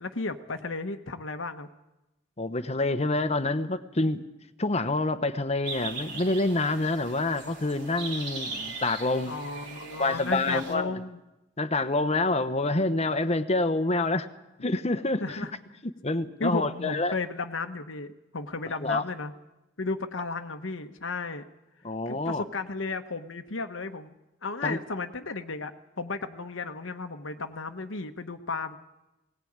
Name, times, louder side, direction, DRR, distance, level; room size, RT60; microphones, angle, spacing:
voice 1, 0.0-1.7 9.3-11.2 15.2-15.5 16.4-19.3 19.8-21.4 22.1-24.1 24.4-28.8, left 3 dB, 85° left, 7 dB, 1.2 m, -34 dB
voice 2, 2.4-4.2 4.6-9.3 10.0-10.9 11.6-14.3 14.6-15.5 16.0-17.1 18.8-19.0 21.8-22.4 24.6-24.8, left 2 dB, 35° left, 11 dB, 1.1 m, -27 dB
sound 1, 5.6-10.7, right 3 dB, 65° right, 3.7 m, -39 dB
19.5 x 18.5 x 8.8 m, 0.97 s
head